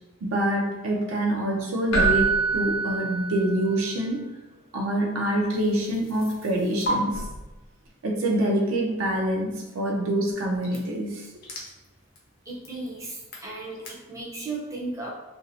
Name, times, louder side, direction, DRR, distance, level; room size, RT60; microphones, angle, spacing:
voice 1, 0.2-4.3 4.7-7.2 8.0-11.3, right 1 dB, 85° right, 0 dB, 0.5 m, -26 dB
Keyboard (musical), 1.9-3.9 7.1-7.3, right 4 dB, 85° left, 0.7 m, -25 dB
sound 1, 5.5-6.9 10.3-13.9, equal, 45° left, 0.5 m, -39 dB
voice 2, 12.5-15.1, right 2 dB, 15° right, -4 dB, 0.5 m, -35 dB
2.6 x 2.0 x 2.7 m, 1.1 s
head